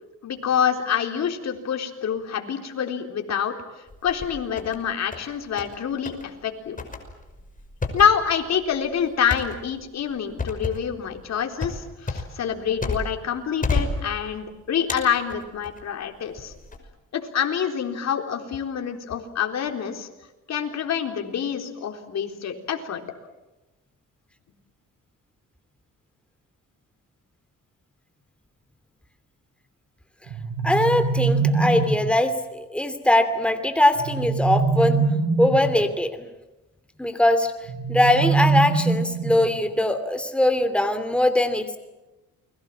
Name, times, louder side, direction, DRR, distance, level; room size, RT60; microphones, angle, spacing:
voice 1, 0.2-3.5 4.0-6.8 7.9-16.5 17.1-20.1 20.5-23.0, left 8 dB, 60° left, 4 dB, 3.9 m, -26 dB
sound 1, 3.9-4.8 5.1-5.8 6.1-6.3 6.8-13.3 13.6-14.5 14.9-15.8 16.4-16.8, left 3 dB, 25° left, 5.6 m, -31 dB
sound 2, 30.3-32.1 33.9-35.8 37.7-39.6, right 4 dB, 70° right, 6.9 m, -23 dB
voice 2, 30.6-35.0 35.4-36.3 37.0-37.5 37.9-41.8, left 1 dB, 5° left, 8 dB, 2.8 m, -21 dB
29.0 x 22.0 x 7.6 m, 1.0 s
cardioid pair, 90°, 30 cm